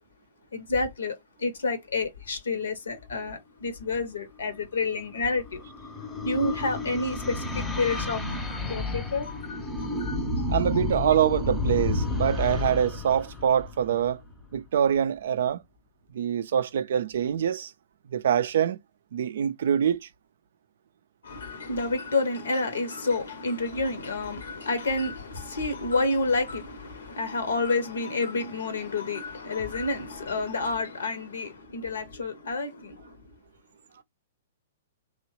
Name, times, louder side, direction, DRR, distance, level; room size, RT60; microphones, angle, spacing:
voice 1, 0.5-1.1 1.4-5.6 6.2-9.6 10.0-10.6 21.2-33.0, left 3 dB, 65° left, 0.7 m, -29 dB
sound 1, 4.8-14.4, left 3 dB, 10° left, 0.7 m, -31 dB
voice 2, 10.5-14.2 14.5-15.6 16.1-17.7 18.1-18.8 19.1-20.1, right 9 dB, 55° right, 0.3 m, -25 dB
3.0 x 2.1 x 2.9 m
figure-of-eight pair, 110°, 0 cm